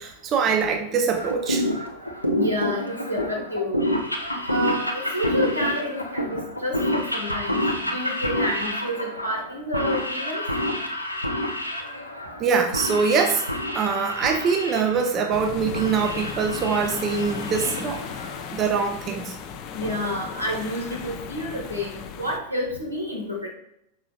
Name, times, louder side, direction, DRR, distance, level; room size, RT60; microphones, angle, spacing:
voice 1, 0.0-1.6 12.4-13.5 13.7-18.0 18.5-19.3, right 5 dB, 30° right, 4 dB, 0.5 m, -23 dB
sound 1, 1.1-18.5, left 1 dB, 90° left, 0.6 m, -28 dB
voice 2, 2.3-3.8 4.5-7.6 7.9-10.4 19.7-23.5, equal, 85° right, -2 dB, 1.3 m, -29 dB
sound 2, 15.3-22.4, left 7 dB, 40° left, 0.4 m, -36 dB
5.7 x 4.2 x 2.2 m, 0.78 s
figure-of-eight pair, 90°, 0 cm